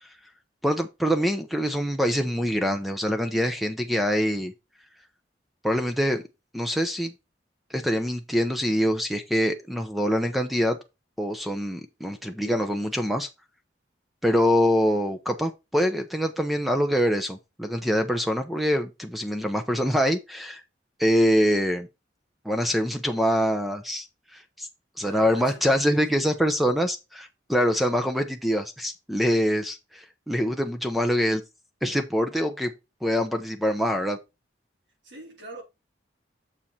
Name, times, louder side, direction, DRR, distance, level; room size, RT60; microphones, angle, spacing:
voice 1, 0.6-4.5 5.6-6.2 6.5-7.1 7.7-10.8 11.2-13.3 14.2-20.6 21.0-21.9 22.4-24.1 24.3-24.7 25.0-31.4 31.8-32.7 33.0-34.2, equal, ahead, 0.8 m, -24 dB
voice 2, 12.4-12.9 25.1-26.4 35.0-35.6, right 1 dB, 80° right, 3.9 m, -44 dB
7.3 x 4.9 x 4.1 m
head